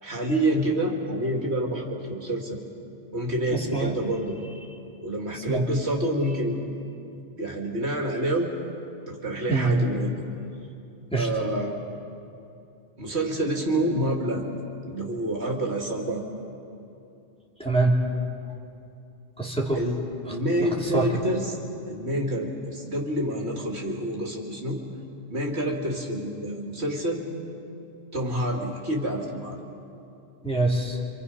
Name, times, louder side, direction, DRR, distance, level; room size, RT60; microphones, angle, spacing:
voice 1, 0.0-2.6 3.1-4.4 5.0-6.6 7.4-8.5 9.1-10.2 11.2-11.7 13.0-14.5 14.8-16.2 19.7-20.0 20.3-21.6 21.9-24.8 25.3-27.3 28.1-29.6, right 1 dB, 65° right, 0 dB, 2.7 m, -27 dB
voice 2, 3.5-3.9 5.5-5.6 9.5-9.7 11.1-11.3 17.6-18.0 19.4-19.8 20.3-21.1 30.4-31.0, right 3 dB, 5° left, -3 dB, 2.8 m, -25 dB
28.0 x 26.0 x 5.6 m, 2.7 s
omnidirectional pair, 1.2 m